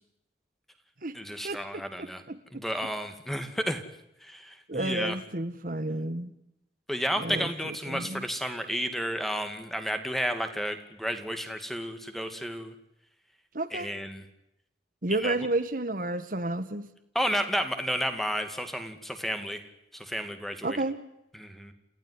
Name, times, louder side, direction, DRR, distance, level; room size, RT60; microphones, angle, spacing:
voice 1, 1.1-2.2 2.5-3.8 4.2-5.2 6.9-12.7 13.7-14.2 15.2-15.3 17.1-19.6 19.9-20.8 21.3-21.7, equal, ahead, 8 dB, 2.4 m, -32 dB
voice 2, 2.3-2.6 4.7-6.3 7.2-8.2 13.5-13.9 15.0-16.9 20.6-21.0, right 2 dB, 50° right, 10 dB, 1.6 m, -31 dB
28.5 x 16.0 x 9.8 m, 0.83 s
head